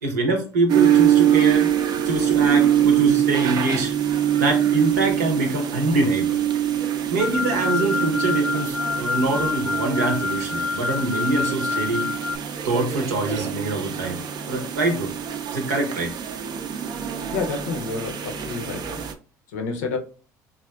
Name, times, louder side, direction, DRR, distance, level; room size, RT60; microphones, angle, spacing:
voice 1, 0.0-1.7 2.0-3.9 4.4-6.4 7.1-12.1 12.6-15.1 15.5-16.1, right 2 dB, 90° right, 0.8 m, -24 dB
sound 1, 0.7-19.1, right 10 dB, 50° right, 0.4 m, -24 dB
sound 2, 7.2-12.4, left 5 dB, 10° left, 0.6 m, -28 dB
voice 2, 17.3-19.1 19.5-20.0, left 4 dB, 85° left, 0.6 m, -29 dB
3.4 x 2.5 x 2.3 m
hypercardioid pair, 65°, 9 cm